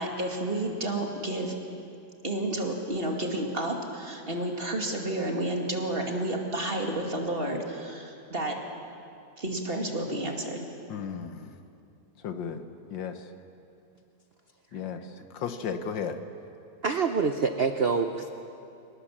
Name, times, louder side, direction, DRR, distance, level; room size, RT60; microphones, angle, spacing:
voice 1, 0.0-1.5 2.2-8.6 9.4-10.7, right 1 dB, 30° right, 1 dB, 2.5 m, -31 dB
voice 2, 10.9-11.6 12.2-13.3 14.7-16.2, left 7 dB, 85° left, 8 dB, 1.9 m, -35 dB
voice 3, 16.8-18.3, right 5 dB, 50° right, 7 dB, 0.7 m, -26 dB
25.5 x 18.5 x 7.4 m, 2.6 s
omnidirectional pair, 2.0 m